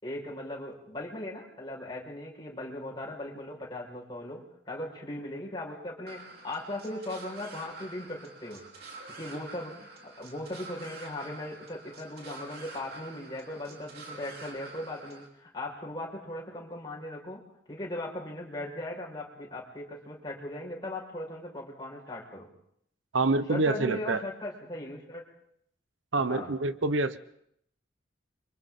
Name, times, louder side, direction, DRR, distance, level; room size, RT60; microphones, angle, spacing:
voice 1, 0.0-8.6 9.1-17.4 17.7-22.5 23.5-25.2 26.2-26.5, left 1 dB, 25° left, -3 dB, 5.0 m, -38 dB
sound 1, 6.1-15.3, right 3 dB, 55° right, 3.5 m, -47 dB
voice 2, 23.1-24.2 26.1-27.2, right 3 dB, 85° right, 13 dB, 0.9 m, -26 dB
29.0 x 25.0 x 3.8 m, 0.71 s
head